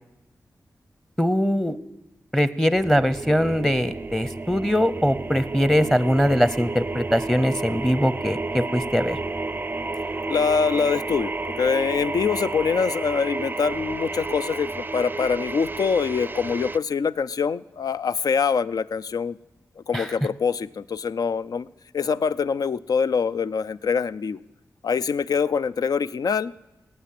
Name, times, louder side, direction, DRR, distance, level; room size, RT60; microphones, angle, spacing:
voice 1, 1.2-1.8 2.3-9.2 19.9-20.1, equal, 5° left, 15 dB, 0.8 m, -22 dB
sound 1, 2.7-16.8, right 3 dB, 30° right, 0.4 m, -31 dB
voice 2, 10.3-19.4 19.9-21.7 21.9-24.4 24.8-26.5, left 6 dB, 75° left, 16 dB, 0.5 m, -24 dB
17.5 x 9.5 x 8.5 m, 0.99 s
cardioid pair, 65°, 7 cm